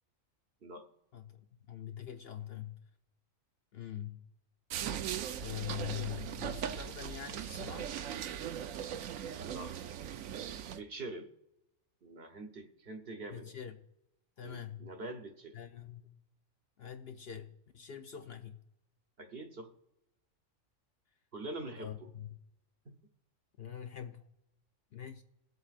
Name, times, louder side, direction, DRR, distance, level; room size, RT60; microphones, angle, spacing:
voice 1, 1.1-2.8 3.7-4.2 5.3-8.0 13.3-13.8 14.4-14.9 15.5-16.2 16.8-18.6 21.7-22.3 23.6-24.3 24.9-25.2, left 10 dB, 60° left, 0.7 m, -44 dB
sound 1, 4.7-10.8, right 9 dB, 80° right, 1.0 m, -39 dB
voice 2, 9.3-9.7 10.7-11.3 12.0-13.6 14.4-15.6 19.2-19.7 21.3-21.9 22.8-23.0, right 2 dB, 50° right, 1.1 m, -44 dB
21.0 x 8.0 x 2.4 m
omnidirectional pair, 1.4 m